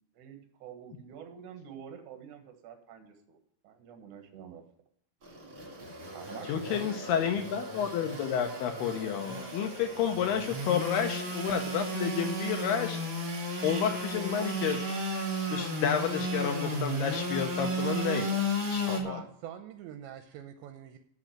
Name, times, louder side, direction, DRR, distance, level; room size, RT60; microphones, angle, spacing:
voice 1, 0.1-3.4 3.6-4.6 6.1-7.3 12.2-12.3, right 8 dB, 60° right, 6 dB, 2.3 m, -47 dB
Engine / Sawing, 5.2-19.0, equal, 30° right, 2.7 m, -34 dB
voice 2, 6.5-13.0 13.6-14.8 15.5-18.4 18.7-19.2, left 8 dB, 75° left, 5 dB, 2.5 m, -30 dB
voice 3, 19.0-21.0, right 10 dB, 80° right, 8 dB, 2.8 m, -45 dB
8.1 x 7.5 x 8.7 m, 0.68 s
omnidirectional pair, 5.4 m